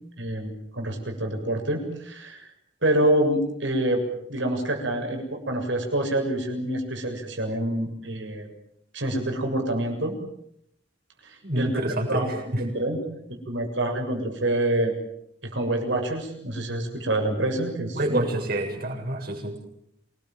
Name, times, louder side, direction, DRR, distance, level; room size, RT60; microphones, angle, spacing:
voice 1, 0.2-2.5 2.8-4.0 4.3-8.5 8.9-10.2 11.2-11.7 12.1-12.3 12.6-13.0 13.3-14.9 15.4-18.2, right 1 dB, 85° right, 3 dB, 7.3 m, -27 dB
voice 2, 11.4-12.6 17.9-19.7, right 1 dB, 55° right, 1 dB, 7.2 m, -27 dB
27.5 x 20.5 x 7.6 m, 0.73 s
head